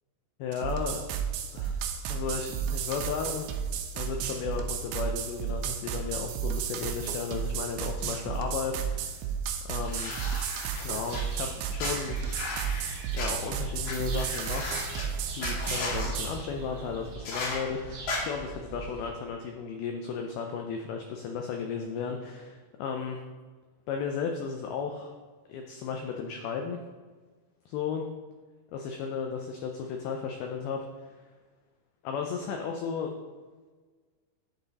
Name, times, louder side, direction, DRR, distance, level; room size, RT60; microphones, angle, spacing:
voice 1, 0.4-1.0 1.5-1.8 2.1-3.5 3.9-9.3 9.7-10.1 10.7-12.2 13.1-14.9 15.3-23.2 23.9-25.2 25.5-26.8 27.7-28.0 28.7-30.9 32.0-33.1, left 6 dB, 85° left, 3 dB, 2.2 m, -34 dB
sound 1, 0.5-16.4, right 7 dB, 80° right, 2.4 m, -33 dB
sound 2, 9.8-11.2 11.8-13.3 13.8-13.9 14.2-15.0 15.4-16.1 17.2-17.6 18.1-18.2, left 3 dB, 65° left, 3.0 m, -35 dB
sound 3, 10.8-19.1, right 4 dB, 65° right, 1.9 m, -43 dB
10.5 x 3.9 x 4.0 m, 1.4 s
omnidirectional pair, 5.0 m